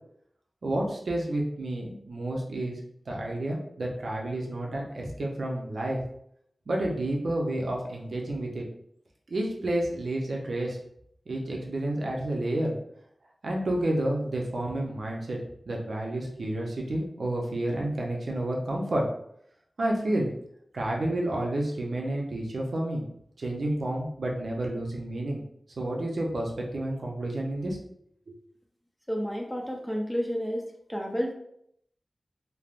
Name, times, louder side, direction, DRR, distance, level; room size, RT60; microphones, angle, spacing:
voice 1, 0.6-2.8 3.1-6.0 6.7-8.6 9.3-10.8 11.3-12.7 13.4-15.4 15.7-19.0 19.8-20.3 20.7-23.0 23.4-25.4 25.8-27.8 28.3-28.4, right 1 dB, 80° right, -1 dB, 0.6 m, -30 dB
voice 2, 29.1-30.6 30.9-31.3, equal, 5° left, 0 dB, 0.5 m, -30 dB
3.2 x 2.0 x 2.4 m, 0.71 s
wide cardioid pair, 85°, 0 cm